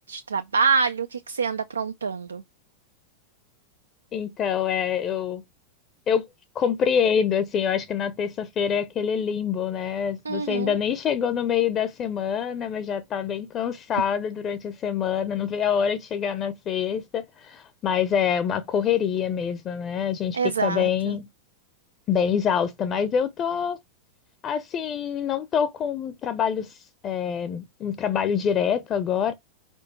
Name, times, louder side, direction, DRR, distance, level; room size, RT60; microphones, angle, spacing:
voice 1, 0.1-2.4 10.3-10.8 20.3-21.1, right 5 dB, 75° right, 0.5 m, -26 dB
voice 2, 4.1-5.4 6.1-6.3 6.5-21.3 22.1-23.8 24.4-29.3, left 8 dB, 30° left, 0.7 m, -26 dB
5.0 x 4.5 x 4.4 m
figure-of-eight pair, 90°, 0 cm